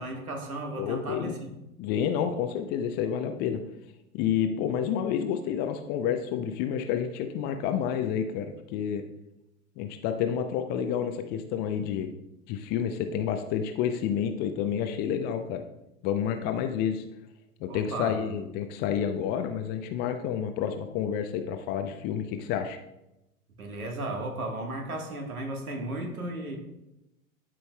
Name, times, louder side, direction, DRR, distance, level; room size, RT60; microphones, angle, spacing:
voice 1, 0.0-1.5 17.7-18.2 23.6-26.6, right 2 dB, 85° right, 2 dB, 1.5 m, -35 dB
voice 2, 0.8-1.4 1.8-3.6 4.1-9.0 9.8-12.1 12.5-15.6 16.0-17.0 17.6-22.8, left 8 dB, 25° left, 7 dB, 0.3 m, -29 dB
11.5 x 5.3 x 2.2 m, 0.91 s
figure-of-eight pair, 90°, 42 cm